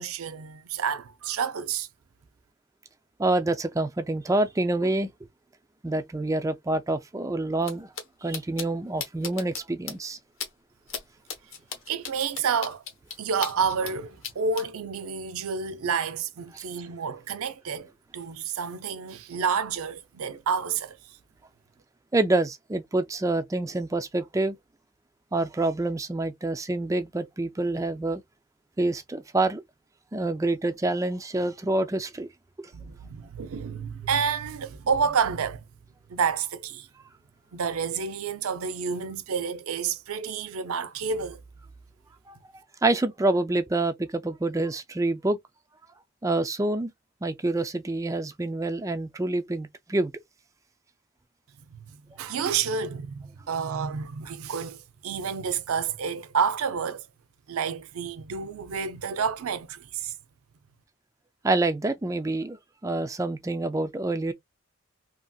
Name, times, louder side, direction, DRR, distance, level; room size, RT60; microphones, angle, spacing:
voice 1, 0.0-1.9 11.9-12.8 13.2-21.2 32.7-35.6 36.1-36.9 37.5-41.4 51.7-51.8 52.2-57.1 57.5-60.1, right 6 dB, 75° right, 0.5 m, -29 dB
voice 2, 3.2-5.1 5.8-7.9 8.2-10.2 16.5-16.6 22.1-24.6 25.3-28.2 28.8-29.6 30.1-32.3 32.6-32.7 42.3-42.4 42.8-45.4 46.2-46.9 47.2-50.1 52.3-52.4 61.4-62.6 62.8-64.3, right 2 dB, 15° right, 0.3 m, -27 dB
sound 1, 7.6-7.7 8.0-8.1 8.3-8.7 9.0-9.6 9.9-10.0 10.4-10.5 10.9-11.0 11.3-13.9 14.2-14.6, left 7 dB, 60° left, 0.9 m, -35 dB
2.8 x 2.6 x 2.3 m
head